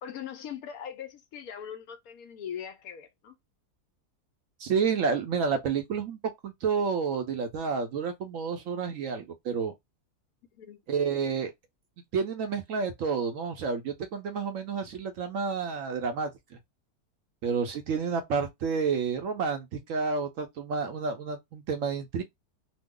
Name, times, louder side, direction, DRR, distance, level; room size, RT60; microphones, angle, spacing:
voice 1, 0.0-3.4 10.5-10.8, left 8 dB, 70° left, 1.0 m, -40 dB
voice 2, 4.6-9.7 10.9-11.5 12.1-16.3 17.4-22.2, right 5 dB, 70° right, 0.8 m, -30 dB
3.0 x 2.0 x 3.6 m
omnidirectional pair, 1.7 m